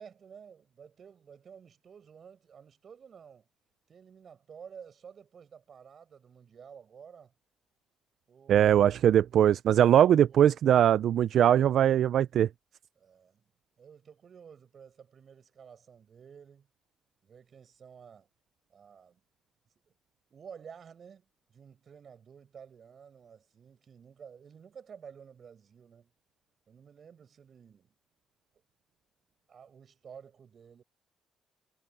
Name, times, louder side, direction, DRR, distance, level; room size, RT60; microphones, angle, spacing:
voice 1, 0.0-3.5 3.9-7.3 8.3-8.7 13.0-13.4 13.8-16.7 17.2-18.3 18.7-19.2 19.9-20.0 20.3-26.1 26.7-27.9 29.5-30.8, right 7 dB, 50° right, 7.1 m, -52 dB
voice 2, 8.5-12.5, right 10 dB, 70° right, 0.4 m, -21 dB
cardioid pair, 90°, 0 cm